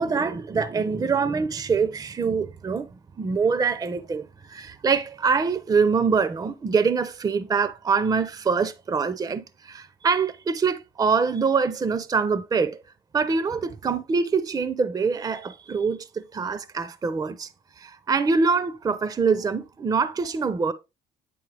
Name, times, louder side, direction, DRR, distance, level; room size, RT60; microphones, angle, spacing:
voice 1, 0.0-2.9 3.2-12.8 13.1-17.5 17.8-20.7, right 5 dB, 20° right, 0.5 m, -24 dB
9.2 x 4.2 x 3.3 m
cardioid pair, 110°, 17 cm